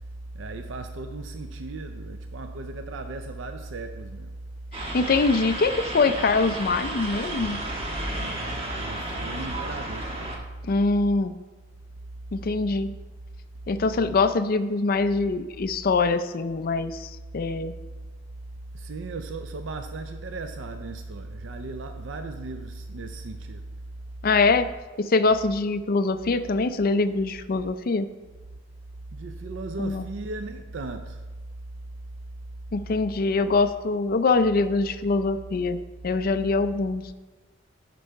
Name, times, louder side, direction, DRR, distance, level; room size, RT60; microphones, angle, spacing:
voice 1, 0.3-4.3 8.8-10.2 18.7-23.7 29.1-31.2, right 2 dB, 75° right, 0.5 m, -36 dB
sound 1, 4.7-10.4, right 1 dB, 30° right, 1.2 m, -32 dB
voice 2, 4.9-7.6 10.6-11.3 12.3-12.9 13.7-17.7 24.2-24.7 25.0-28.1 29.8-30.0 32.7-35.8 36.0-37.1, left 3 dB, 50° left, 0.5 m, -23 dB
10.0 x 5.3 x 4.6 m
head